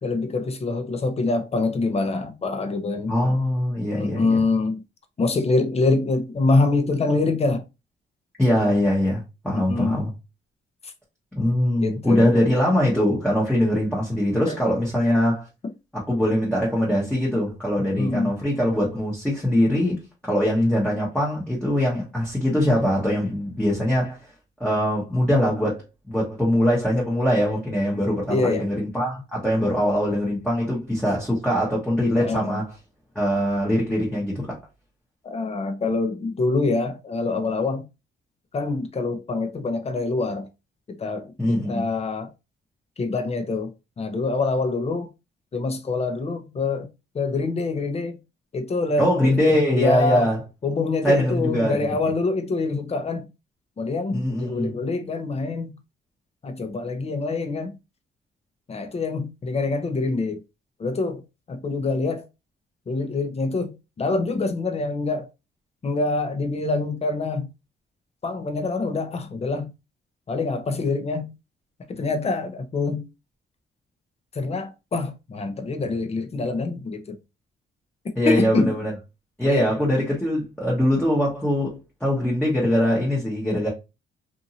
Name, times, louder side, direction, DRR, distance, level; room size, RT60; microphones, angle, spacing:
voice 1, 0.0-3.1 3.9-4.8 5.2-7.6 9.5-10.0 11.8-12.3 14.5-14.6 18.0-18.3 28.3-28.7 32.1-32.6 35.2-37.8 38.5-40.5 41.0-42.3 43.0-43.7 44.0-45.1 45.5-46.9 47.1-48.2 48.5-49.4 49.7-50.3 50.6-53.2 53.8-55.7 56.4-57.7 58.7-60.4 60.8-61.2 61.5-62.2 62.9-65.3 65.8-67.5 68.2-69.7 70.3-71.3 71.9-73.0 74.3-77.2 78.3-78.7 79.4-79.7, left 3 dB, 30° left, 0.7 m, -25 dB
voice 2, 3.1-4.4 8.4-10.1 11.3-15.5 15.9-20.0 20.3-24.3 24.6-32.7 33.1-34.6 41.4-41.9 49.0-50.4 51.0-52.0 54.1-54.7 78.2-78.9 79.4-83.7, left 1 dB, 5° left, 1.1 m, -22 dB
2.6 x 2.6 x 2.7 m
cardioid pair, 90°, 20 cm